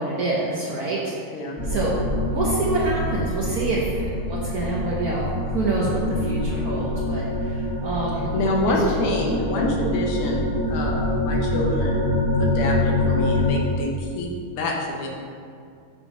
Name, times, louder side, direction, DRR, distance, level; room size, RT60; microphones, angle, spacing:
voice 1, 0.0-1.9 2.3-5.2 5.5-8.3 8.7-8.8, right 3 dB, 65° right, -5 dB, 0.9 m, -27 dB
sound 1, 1.6-13.5, left 1 dB, 15° right, 0.7 m, -25 dB
voice 2, 8.3-15.1, left 1 dB, 80° left, -1 dB, 1.8 m, -27 dB
7.0 x 3.4 x 4.9 m, 2.3 s
omnidirectional pair, 2.4 m